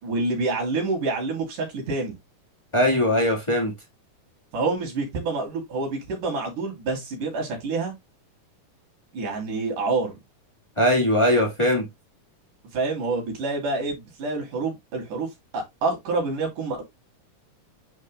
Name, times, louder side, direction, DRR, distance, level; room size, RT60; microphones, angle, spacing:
voice 1, 0.0-2.1 4.5-7.9 9.1-10.2 12.7-15.3 15.5-16.8, right 3 dB, 80° right, 4.3 m, -27 dB
voice 2, 2.7-3.7 10.8-11.9, left 1 dB, 20° left, 0.7 m, -20 dB
9.7 x 4.8 x 2.3 m
omnidirectional pair, 3.6 m